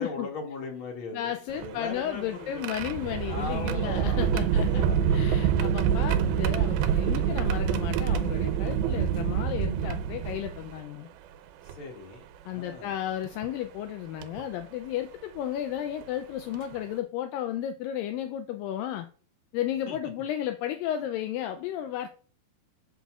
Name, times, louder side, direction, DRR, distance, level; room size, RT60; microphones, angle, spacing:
voice 1, 0.0-2.7 3.3-5.3 11.6-12.2 12.5-13.0 19.9-20.0, left 3 dB, 40° left, 0 dB, 2.5 m, -39 dB
voice 2, 1.1-4.9 5.1-11.1 12.5-19.1 19.5-22.1, left 11 dB, 80° left, 7 dB, 2.1 m, -33 dB
sound 1, 1.5-10.8 11.7-11.8 13.2-13.5 14.2-14.4 16.0-16.1 16.5-16.8, right 8 dB, 85° right, 2.6 m, -27 dB
13.0 x 5.7 x 2.4 m, 0.39 s
omnidirectional pair, 4.3 m